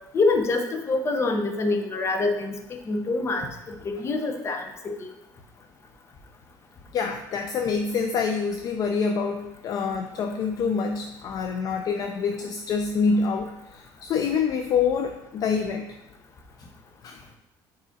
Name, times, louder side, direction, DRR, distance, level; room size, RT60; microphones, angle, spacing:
voice 1, 0.1-5.1, left 3 dB, 30° left, 5 dB, 0.8 m, -26 dB
voice 2, 6.9-15.8 17.0-17.2, left 5 dB, 45° left, 6 dB, 0.4 m, -26 dB
7.4 x 4.8 x 2.7 m, 0.91 s
cardioid pair, 125°, 9 cm